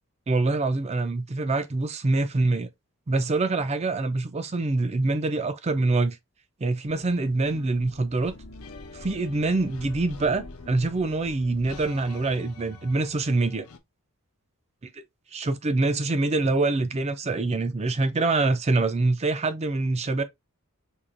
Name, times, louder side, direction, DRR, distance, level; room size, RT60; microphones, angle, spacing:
voice 1, 0.3-2.7 3.1-6.2 6.6-8.3 8.9-13.7 15.3-20.2, right 2 dB, 30° right, 0.4 m, -25 dB
sound 1, 6.9-11.9, left 1 dB, 25° left, 0.5 m, -47 dB
sound 2, 7.4-13.8, left 3 dB, 75° left, 0.6 m, -47 dB
4.6 x 2.8 x 2.5 m
head